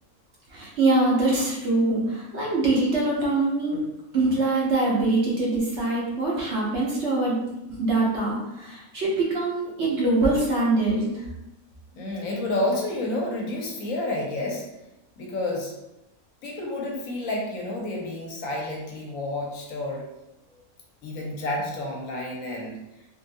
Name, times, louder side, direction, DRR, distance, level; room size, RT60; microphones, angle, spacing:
voice 1, 0.5-3.8 4.1-7.4 7.7-11.2, right 2 dB, 55° right, -4 dB, 1.0 m, -23 dB
voice 2, 11.9-14.6 15.2-15.7 16.4-20.0 21.0-22.8, left 2 dB, 70° left, -1 dB, 1.1 m, -30 dB
3.3 x 2.6 x 2.6 m, 0.92 s
omnidirectional pair, 1.5 m